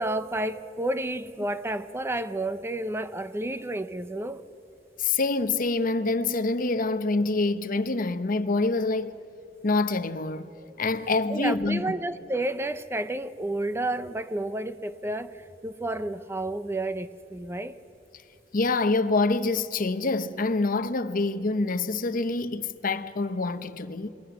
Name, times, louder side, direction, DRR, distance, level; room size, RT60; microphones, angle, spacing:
voice 1, 0.0-4.4 10.6-10.7 11.3-17.7, right 1 dB, 15° right, 0.6 m, -31 dB
voice 2, 5.0-9.1 9.6-10.5 10.8-11.8 18.5-24.1, left 3 dB, 50° left, 0.8 m, -26 dB
27.5 x 22.0 x 6.0 m
head